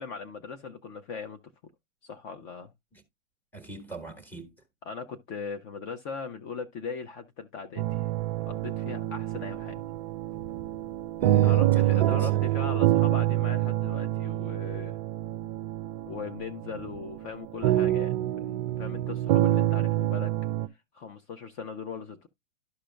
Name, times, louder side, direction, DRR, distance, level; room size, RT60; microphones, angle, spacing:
voice 1, 0.0-1.4 2.0-2.7 4.8-8.0 8.5-9.8 11.4-15.0 16.1-20.3 20.9-22.3, left 5 dB, 40° left, 1.0 m, -39 dB
voice 2, 3.5-4.5 11.2-12.5, right 2 dB, 5° left, 1.3 m, -40 dB
sound 1, 7.8-20.7, right 14 dB, 30° right, 0.4 m, -27 dB
13.0 x 5.0 x 2.2 m
hypercardioid pair, 125°, 39 cm